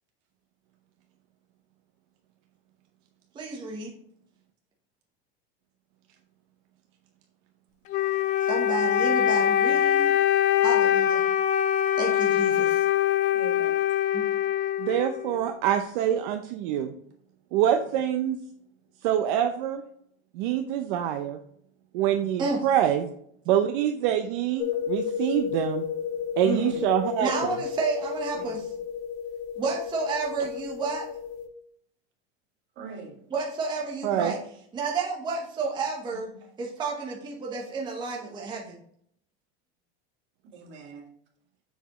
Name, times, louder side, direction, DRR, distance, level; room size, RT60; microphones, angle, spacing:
voice 1, 3.3-3.9 8.4-10.1 10.6-11.2 11.9-12.8 14.1-14.2 22.4-22.6 27.2-28.7 29.6-31.0 33.3-34.4 34.7-36.3 36.6-38.8, right 4 dB, 15° right, -2 dB, 1.0 m, -31 dB
Wind instrument woodwind instrument, 7.9-15.5, left 10 dB, 25° left, 0.4 m, -23 dB
voice 2, 13.3-13.8 22.1-22.4 26.4-26.8 28.3-28.5 32.8-33.2 34.1-34.3 40.5-41.1, right 4 dB, 35° right, 0 dB, 2.0 m, -36 dB
voice 3, 14.8-16.9 17.5-18.4 19.0-19.8 20.3-21.4 21.9-23.1 23.5-25.8 26.4-27.6 34.0-34.3, right 10 dB, 55° right, 6 dB, 0.7 m, -25 dB
sound 1, 24.6-31.5, left 8 dB, 65° left, 1.3 m, -33 dB
7.1 x 6.1 x 3.0 m, 0.66 s
supercardioid pair, 160°, 31 cm